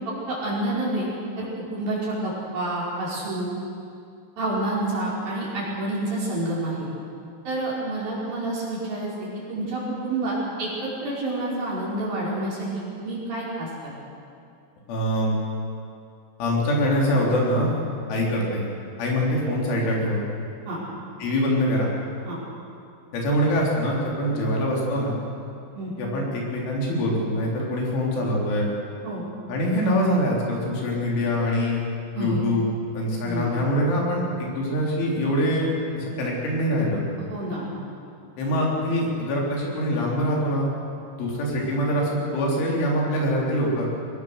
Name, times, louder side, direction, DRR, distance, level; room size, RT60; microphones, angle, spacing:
voice 1, 0.3-1.1 1.4-3.5 4.4-6.9 7.4-13.9 20.7-20.8 22.2-22.4 25.7-25.9 29.0-29.2 32.1-32.4 33.2-33.5 37.3-37.7, right 1 dB, 45° right, -6 dB, 6.7 m, -28 dB
voice 2, 14.9-15.3 16.4-17.7 18.1-18.6 19.0-20.2 21.2-21.9 23.1-25.1 26.0-28.7 29.5-31.8 32.2-32.7 32.9-35.7 36.0-37.0 38.4-40.7 41.2-43.9, equal, 70° left, -3 dB, 6.1 m, -24 dB
23.5 x 20.0 x 6.7 m, 2.5 s
omnidirectional pair, 5.7 m